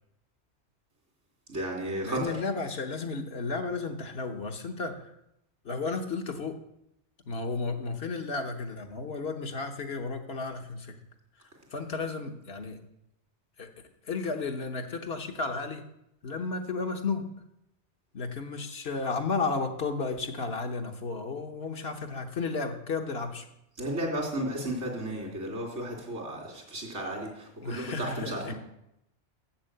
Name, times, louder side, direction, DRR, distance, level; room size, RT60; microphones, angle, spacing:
voice 1, 1.5-2.3 23.8-28.5, right 1 dB, 85° right, -1 dB, 3.2 m, -33 dB
voice 2, 2.0-5.1 5.6-6.6 7.3-10.9 11.7-12.8 13.6-13.7 14.0-15.8 16.2-17.3 18.1-23.5 27.6-28.5, left 4 dB, 60° left, 4 dB, 1.3 m, -33 dB
7.6 x 7.4 x 7.9 m, 0.81 s
omnidirectional pair, 1.2 m